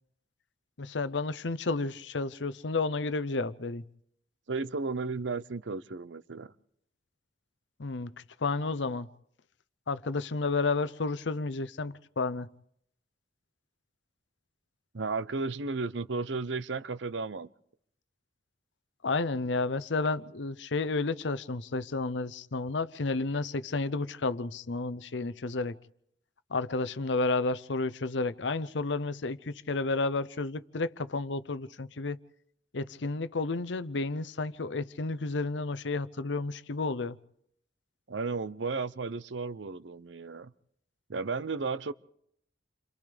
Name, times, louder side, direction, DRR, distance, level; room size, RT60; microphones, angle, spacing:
voice 1, 0.8-3.8 7.8-8.1 8.4-9.1 9.9-12.5 19.0-25.8 26.5-32.2 32.7-37.2, left 3 dB, 70° left, 0.7 m, -31 dB
voice 2, 4.5-6.5 14.9-17.5 38.1-40.5 41.1-41.9, right 4 dB, 75° right, 0.7 m, -34 dB
29.5 x 26.5 x 3.4 m
head